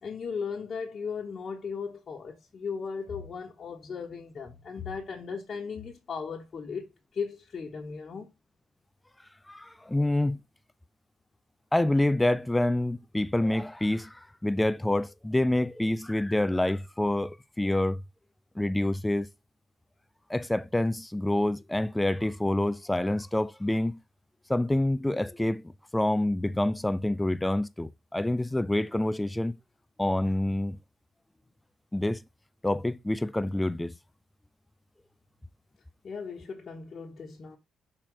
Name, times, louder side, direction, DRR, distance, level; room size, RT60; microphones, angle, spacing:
voice 1, 0.0-8.3 36.0-37.6, left 5 dB, 45° left, 1.3 m, -37 dB
voice 2, 9.5-10.4 11.7-18.0 18.6-19.3 20.3-24.0 24.5-29.6 30.0-30.8 31.9-32.2 32.6-33.9, left 1 dB, 10° left, 0.4 m, -27 dB
6.0 x 4.4 x 3.8 m
cardioid pair, 90°, 0 cm